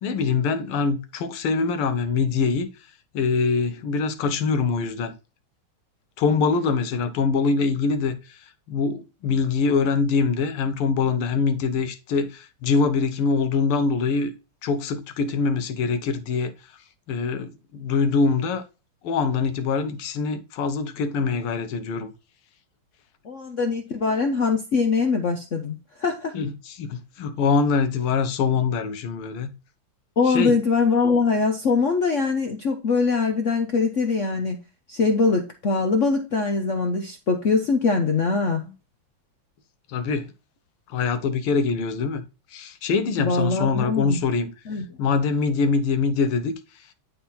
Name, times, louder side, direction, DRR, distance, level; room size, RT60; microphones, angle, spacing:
voice 1, 0.0-2.7 3.1-5.1 6.2-14.3 14.6-16.7 17.1-18.6 19.0-22.1 26.3-29.5 30.3-30.6 39.9-40.3 40.9-42.2 42.5-46.9, left 4 dB, 85° left, 1.9 m, -24 dB
voice 2, 23.2-26.3 30.2-34.6 34.9-38.6 43.2-44.2 44.7-44.9, left 4 dB, 60° left, 0.7 m, -22 dB
10.5 x 3.7 x 4.2 m
omnidirectional pair, 2.4 m